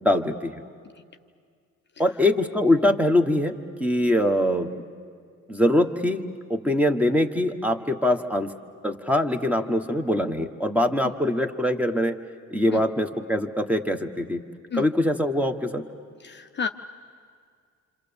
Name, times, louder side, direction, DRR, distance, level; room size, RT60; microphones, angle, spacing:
voice 1, 0.0-0.6 2.0-4.7 5.5-8.5 8.8-12.2 12.5-14.4 14.7-15.8, left 1 dB, 5° right, 6 dB, 1.3 m, -23 dB
voice 2, 16.2-16.7, left 6 dB, 35° left, 7 dB, 0.6 m, -30 dB
27.5 x 26.5 x 7.0 m, 2.1 s
cardioid pair, 90°, 30 cm